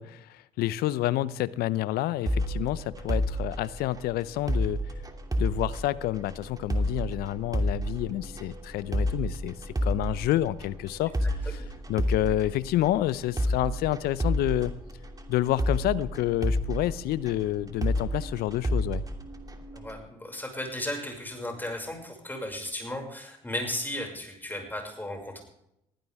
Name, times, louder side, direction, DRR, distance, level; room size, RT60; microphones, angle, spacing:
voice 1, 0.0-4.8 5.4-11.1 11.9-14.7 15.3-19.0, left 14 dB, 65° left, 18 dB, 0.8 m, -28 dB
sound 1, 2.3-20.0, equal, 20° right, 2.8 m, -31 dB
voice 2, 19.7-25.4, left 1 dB, 10° left, 2 dB, 6.2 m, -35 dB
22.0 x 15.5 x 3.6 m, 0.79 s
hypercardioid pair, 55°, 17 cm